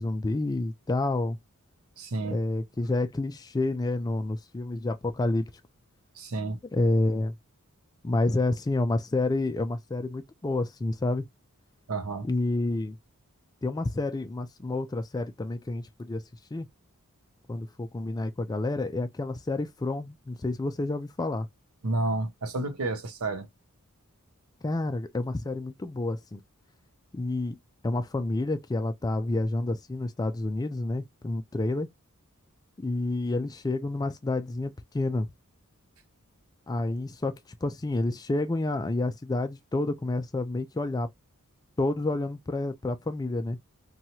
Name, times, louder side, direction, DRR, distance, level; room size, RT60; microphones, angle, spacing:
voice 1, 0.0-1.4 2.3-5.5 6.7-7.3 8.0-11.2 12.2-13.0 13.6-16.2 16.5-16.7 17.5-21.5 24.6-26.4 27.1-27.6 27.8-31.9 32.8-35.3 36.7-37.3 37.6-41.1 41.8-43.6, left 2 dB, 15° left, 0.3 m, -29 dB
voice 2, 2.0-2.4 6.2-6.6 11.9-12.3 21.8-23.5, right 2 dB, 70° right, 0.7 m, -30 dB
2.9 x 2.3 x 2.8 m
head